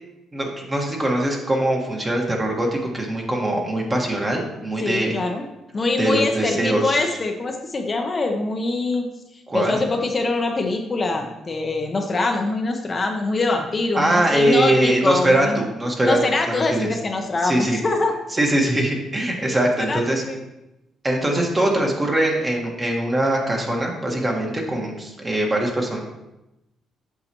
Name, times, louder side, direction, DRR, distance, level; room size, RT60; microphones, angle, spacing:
voice 1, 0.3-5.2 6.0-7.0 9.5-9.8 13.9-16.2 16.5-16.9 17.4-17.8 18.3-20.2 21.0-26.0, right 1 dB, 25° right, 0 dB, 1.5 m, -22 dB
voice 2, 4.8-5.4 5.7-9.1 9.3-15.6 16.0-18.1 19.8-20.4, left 3 dB, 35° left, 3 dB, 0.8 m, -24 dB
7.8 x 5.7 x 3.0 m, 0.94 s
cardioid pair, 90°, 0 cm